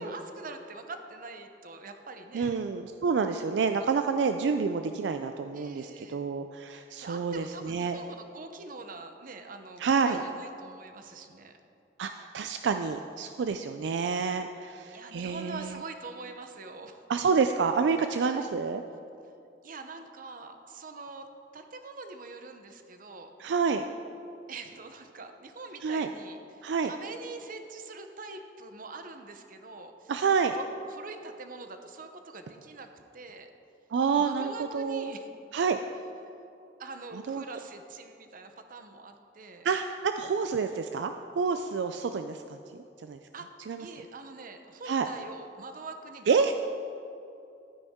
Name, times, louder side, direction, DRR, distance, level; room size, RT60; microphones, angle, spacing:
voice 1, 0.0-2.6 5.5-6.3 7.0-11.5 14.9-17.0 18.1-18.5 19.6-21.3 21.5-23.3 24.5-30.1 30.5-33.5 34.2-35.3 36.2-36.3 36.8-39.7 43.3-43.5 43.8-46.5, right 3 dB, 50° right, 7 dB, 0.8 m, -44 dB
voice 2, 2.3-8.0 9.8-10.2 12.0-15.7 17.1-18.8 23.4-23.8 25.8-26.1 26.6-26.9 30.1-30.6 33.9-35.1 35.5-35.8 37.3-37.4 39.6-42.4 43.0-43.2 43.7-43.8 44.9-45.1 46.3-46.5, right 5 dB, 75° right, 7 dB, 0.4 m, -28 dB
12.0 x 9.6 x 3.7 m, 2.6 s
head